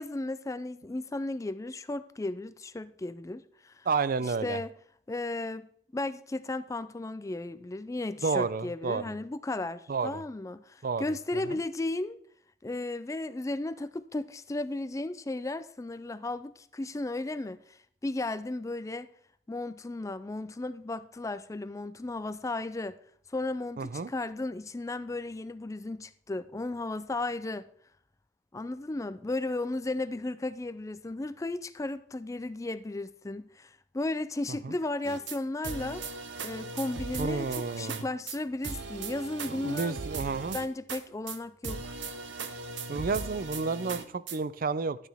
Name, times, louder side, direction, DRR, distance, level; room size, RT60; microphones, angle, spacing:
voice 1, 0.0-3.9 4.2-4.7 5.1-12.2 12.6-17.8 18.0-19.1 19.5-23.0 23.3-27.7 28.5-36.0 36.4-40.0 40.5-41.8, left 2 dB, 15° left, 0.4 m, -35 dB
voice 2, 3.9-4.6 8.2-9.1 9.9-10.2 10.8-11.0 11.5-11.6 23.8-24.1 34.5-34.7 37.2-38.0 39.5-40.6 42.9-45.1, right 4 dB, 50° right, 0.4 m, -31 dB
sound 1, 35.0-35.4 35.6-38.0 38.3-38.4 38.6-41.0 41.3-41.4 41.6-44.4, right 4 dB, 70° right, 1.0 m, -38 dB
12.0 x 9.3 x 3.5 m
head